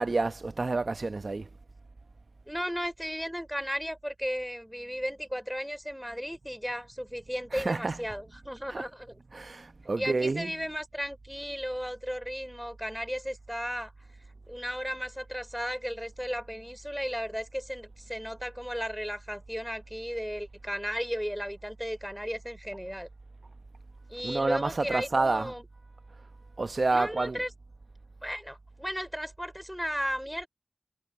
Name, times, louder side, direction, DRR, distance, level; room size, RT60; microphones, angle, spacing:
voice 1, 0.0-1.5 7.5-8.1 8.7-8.9 9.3-10.6 24.2-25.5 26.6-27.4, right 3 dB, 70° right, 0.9 m, -29 dB
voice 2, 2.5-9.2 10.0-13.9 14.5-23.1 24.1-25.7 26.9-27.5 28.2-30.5, equal, ahead, 4.0 m, -35 dB
wide cardioid pair, 45°, 0 cm